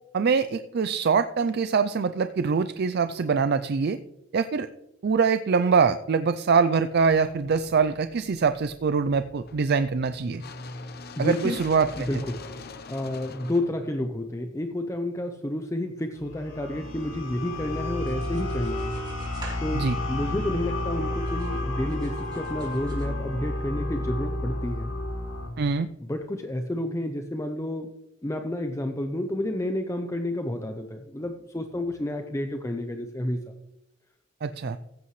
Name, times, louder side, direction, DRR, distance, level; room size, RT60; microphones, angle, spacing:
voice 1, 0.1-4.0 4.3-4.7 5.0-10.4 11.2-12.1 19.7-20.0 25.6-25.9 34.4-34.8, right 5 dB, 55° right, 10 dB, 0.4 m, -24 dB
sound 1, 7.0-15.1, left 3 dB, 50° left, 0.8 m, -44 dB
voice 2, 11.2-11.6 12.0-12.4 12.9-18.9 19.6-24.9 26.0-27.9 28.2-33.5, left 1 dB, 15° left, 5 dB, 0.6 m, -30 dB
sound 2, 16.1-25.5, left 1 dB, 80° left, 3.0 m, -31 dB
sound 3, 18.0-20.9 21.3-23.1, right 1 dB, 25° right, 3.4 m, -47 dB
15.0 x 8.5 x 3.2 m, 0.83 s
head